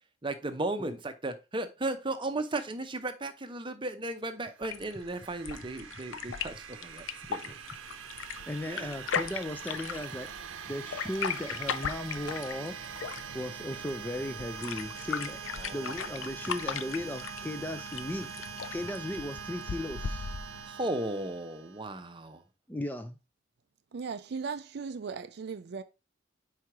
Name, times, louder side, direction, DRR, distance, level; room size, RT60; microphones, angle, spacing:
voice 1, 0.2-7.5 8.7-9.0 15.6-16.0 20.7-22.4, right 2 dB, 25° right, 0.7 m, -35 dB
sound 1, 4.5-22.1, right 7 dB, 85° right, 0.7 m, -43 dB
sound 2, 4.6-20.6, left 7 dB, 75° left, 0.5 m, -38 dB
voice 2, 8.5-10.3 10.7-12.8 13.3-15.4 15.7-20.3 22.7-23.2, left 1 dB, 10° left, 0.4 m, -36 dB
voice 3, 23.9-25.8, right 5 dB, 55° right, 0.4 m, -37 dB
4.9 x 4.5 x 4.6 m
head